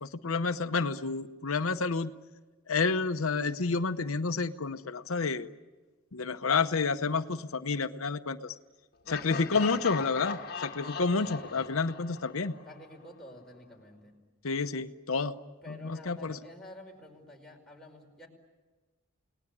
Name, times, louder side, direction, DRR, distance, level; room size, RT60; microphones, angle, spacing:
voice 1, 0.0-2.1 2.7-5.5 6.1-8.5 9.1-12.5 14.4-15.3 15.7-16.4, left 4 dB, 85° left, 9 dB, 0.8 m, -30 dB
Laughter, 9.1-12.9, left 5 dB, 50° left, 1.6 m, -39 dB
voice 2, 9.1-9.9 11.2-11.5 12.6-14.2 15.6-18.3, left 1 dB, ahead, -1 dB, 5.2 m, -50 dB
29.5 x 19.0 x 9.8 m, 1.3 s
head